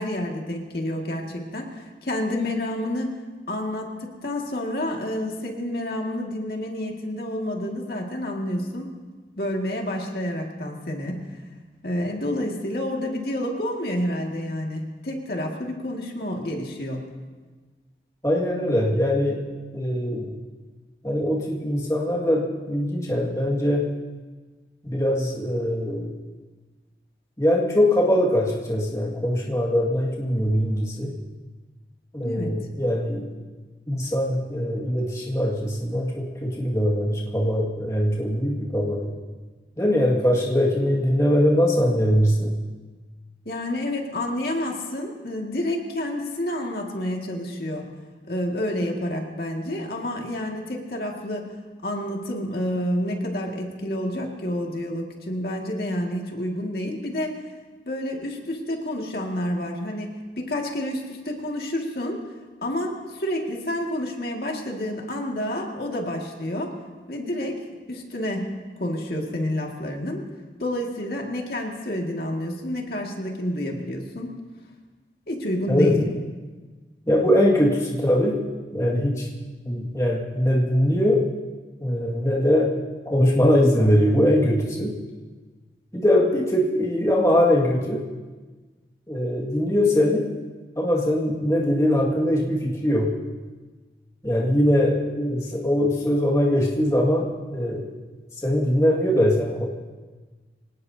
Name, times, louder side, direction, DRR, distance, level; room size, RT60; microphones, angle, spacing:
voice 1, 0.0-3.1 3.5-8.9 9.4-11.2 11.8-17.0 32.2-32.5 43.5-47.8 48.3-51.5 51.8-57.4 57.9-62.2 62.6-66.8 67.1-67.6 67.9-70.2 70.6-74.4 75.3-76.0, left 1 dB, 60° left, 0 dB, 2.1 m, -29 dB
voice 2, 18.2-19.4 19.7-20.3 21.0-23.9 24.8-26.1 27.4-31.1 32.1-33.3 33.9-39.1 39.8-42.5 75.7-76.1 77.1-78.4 78.7-79.3 79.6-81.3 81.8-82.7 83.1-85.0 85.9-88.0 89.1-90.3 90.8-93.1 94.2-97.9 98.4-99.7, equal, 20° left, -3 dB, 2.0 m, -22 dB
24.5 x 18.5 x 2.8 m, 1.3 s
head